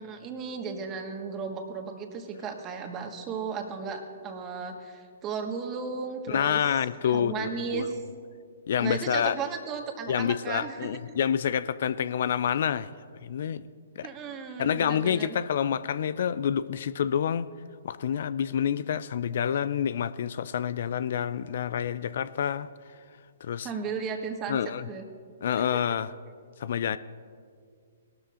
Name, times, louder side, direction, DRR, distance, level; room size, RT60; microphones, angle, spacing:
voice 1, 0.0-6.8 7.0-8.0 8.8-10.9 14.0-15.4 23.6-24.6 24.9-25.1 25.7-25.8, right 5 dB, 25° right, 4 dB, 1.5 m, -35 dB
voice 2, 6.3-7.3 7.7-7.9 8.7-9.3 10.1-12.9 13.2-13.6 14.0-14.1 14.6-17.5 17.8-22.7 23.4-23.7 24.5-24.9 25.4-26.1 26.6-27.0, left 8 dB, 60° left, 15 dB, 0.4 m, -28 dB
20.5 x 12.5 x 2.5 m, 2.2 s
figure-of-eight pair, 125°, 0 cm